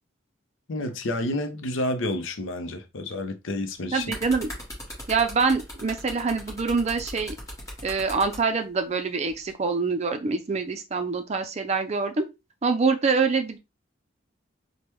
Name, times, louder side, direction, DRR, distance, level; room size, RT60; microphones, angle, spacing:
voice 1, 0.7-4.1, left 1 dB, 85° left, 0.6 m, -29 dB
sound 1, 3.7-8.4 9.3-9.5, equal, 15° left, 1.3 m, -39 dB
voice 2, 3.9-4.5 5.1-7.4 7.8-12.2 12.6-13.6, right 4 dB, 35° right, 0.4 m, -25 dB
3.3 x 2.1 x 3.0 m
head